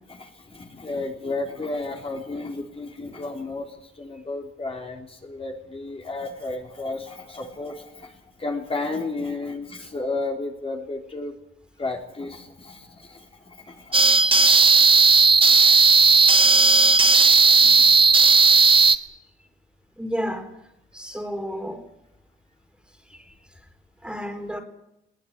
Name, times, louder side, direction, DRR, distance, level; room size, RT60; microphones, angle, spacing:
voice 1, 0.1-11.4 11.8-14.5 17.5-18.0, left 3 dB, 30° left, 3.8 m, -33 dB
sound 1, 13.9-19.0, right 4 dB, 25° right, 1.3 m, -15 dB
voice 2, 20.0-20.5 20.9-21.8 23.1-23.3 24.0-24.6, equal, 5° right, 4.1 m, -31 dB
20.5 x 19.0 x 9.9 m
cardioid pair, 90°, 20 cm